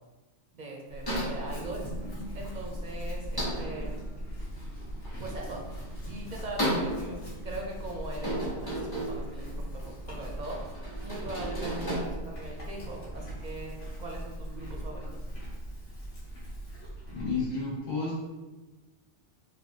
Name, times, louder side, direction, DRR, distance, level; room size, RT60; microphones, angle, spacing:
voice 1, 0.5-1.9 2.3-4.0 5.2-5.7 6.1-10.7 11.0-15.3, right 2 dB, 50° right, -1 dB, 0.6 m, -41 dB
Chewing mastication / Livestock farm animals working animals, 0.9-17.4, equal, 85° left, 1.5 m, -39 dB
sound 1, 1.1-12.0, equal, 20° left, 1.0 m, -36 dB
voice 2, 17.1-18.2, left 3 dB, 40° left, -11 dB, 1.1 m, -31 dB
4.8 x 2.6 x 2.7 m, 1.2 s
omnidirectional pair, 1.2 m